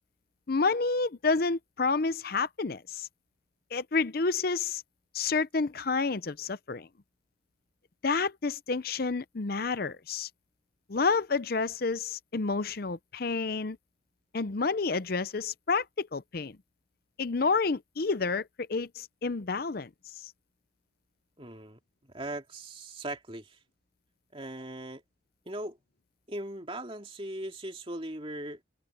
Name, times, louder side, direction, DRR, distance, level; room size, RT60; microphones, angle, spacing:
voice 1, 0.5-3.1 3.7-4.8 5.1-6.9 8.0-10.3 10.9-13.8 14.3-16.6 17.2-19.9, left 4 dB, 50° left, 0.6 m, -29 dB
voice 2, 21.4-23.6 24.3-25.0 25.5-25.8 26.3-28.6, right 1 dB, 25° right, 2.7 m, -39 dB
head